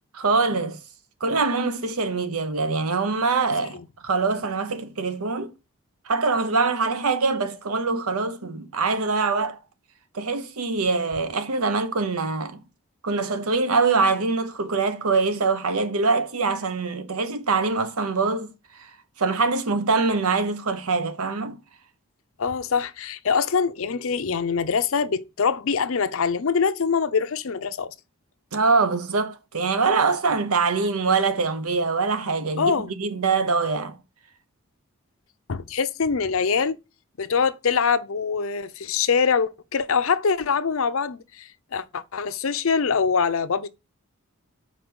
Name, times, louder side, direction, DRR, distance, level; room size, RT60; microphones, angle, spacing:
voice 1, 0.1-0.8 1.2-3.8 4.0-5.5 6.1-9.6 10.1-12.6 13.0-18.5 18.8-18.9 19.2-21.6 28.5-34.0, right 4 dB, 80° right, 0.8 m, -24 dB
voice 2, 22.4-27.9 32.6-32.9 35.5-36.8 37.2-43.7, left 5 dB, 65° left, 0.6 m, -24 dB
5.1 x 4.6 x 6.1 m
head